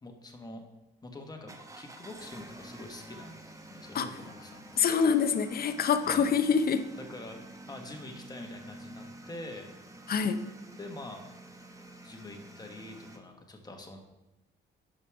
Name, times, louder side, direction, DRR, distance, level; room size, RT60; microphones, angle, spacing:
voice 1, 0.0-0.6 1.0-3.4 3.7-4.8 6.1-6.3 7.0-7.4 7.7-9.7 10.8-11.2 12.0-14.0, left 2 dB, 20° left, 3 dB, 1.2 m, -45 dB
sound 1, 1.5-13.2, right 1 dB, 15° right, 0.9 m, -49 dB
voice 2, 4.8-6.9 10.1-10.4, left 6 dB, 50° left, 10 dB, 0.6 m, -26 dB
5.3 x 4.9 x 5.8 m, 1.0 s
cardioid pair, 90°, 20 cm